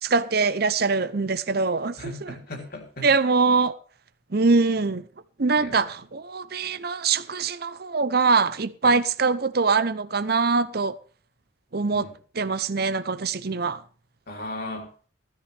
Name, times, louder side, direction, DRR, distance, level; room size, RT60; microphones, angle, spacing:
voice 1, 0.0-2.3 3.0-3.8 4.3-5.0 5.4-10.9 11.7-12.1 12.3-13.8, right 4 dB, 50° right, 0.7 m, -23 dB
voice 2, 2.0-3.1 5.6-5.9 8.8-8.9 11.9-12.1 14.3-14.9, left 1 dB, 50° left, 3.3 m, -37 dB
15.5 x 13.5 x 3.4 m
head